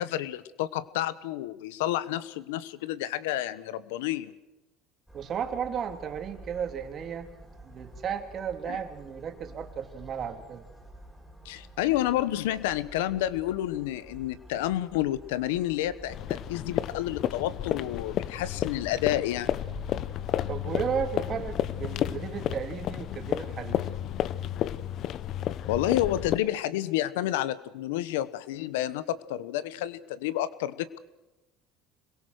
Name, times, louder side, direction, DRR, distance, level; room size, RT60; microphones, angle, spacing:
voice 1, 0.0-4.3 8.7-8.8 11.4-19.5 25.7-31.0, left 13 dB, 90° left, 17 dB, 1.1 m, -30 dB
sound 1, 5.1-21.9, right 1 dB, ahead, 5.9 m, -49 dB
voice 2, 5.1-7.3 7.6-10.6 20.5-23.9, right 7 dB, 45° right, 7 dB, 2.7 m, -34 dB
sound 2, 16.1-26.4, left 11 dB, 55° left, 0.8 m, -32 dB
26.5 x 22.0 x 6.5 m, 1.0 s
supercardioid pair, 100°, 0 cm